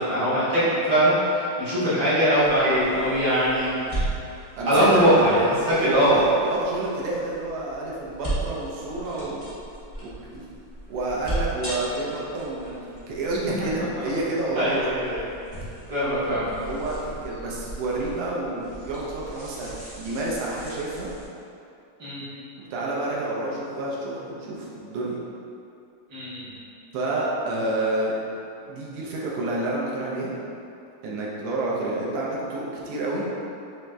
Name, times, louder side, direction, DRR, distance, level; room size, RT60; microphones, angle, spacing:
voice 1, 0.0-4.0 4.6-6.2 14.5-15.3 15.9-16.5 22.0-22.2 26.1-26.5, equal, 50° right, -12 dB, 1.2 m, -21 dB
sound 1, 2.4-21.3, right 1 dB, 40° left, 0.4 m, -37 dB
voice 2, 4.5-5.2 5.7-9.4 10.3-10.5 10.9-14.9 16.6-21.1 22.6-25.2 26.9-28.1 28.7-30.3 31.0-33.2, right 2 dB, 75° right, -5 dB, 1.7 m, -29 dB
5.1 x 3.0 x 3.3 m, 2.7 s
omnidirectional pair, 3.3 m